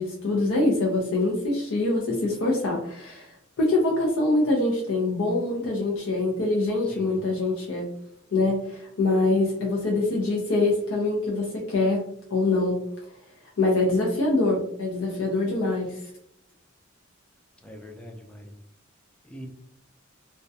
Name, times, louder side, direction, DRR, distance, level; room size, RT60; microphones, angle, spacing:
voice 1, 0.0-3.3 3.6-7.9 8.3-12.0 12.3-12.8 13.6-16.0, left 2 dB, 75° left, -2 dB, 0.5 m, -24 dB
voice 2, 17.6-18.5 19.2-19.5, equal, 5° left, 2 dB, 0.3 m, -43 dB
2.2 x 2.1 x 2.6 m, 0.71 s
head